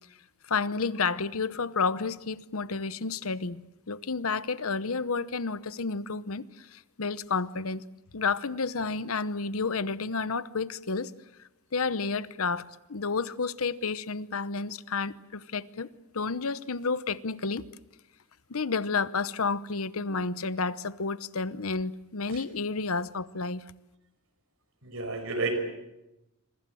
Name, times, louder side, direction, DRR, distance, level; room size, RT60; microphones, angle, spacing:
voice 1, 0.5-7.8 8.1-11.1 11.7-15.9 16.1-17.7 18.5-23.6, left 4 dB, 75° left, 0.9 m, -31 dB
voice 2, 24.8-25.6, right 3 dB, 65° right, 5.3 m, -31 dB
26.5 x 25.0 x 7.8 m
head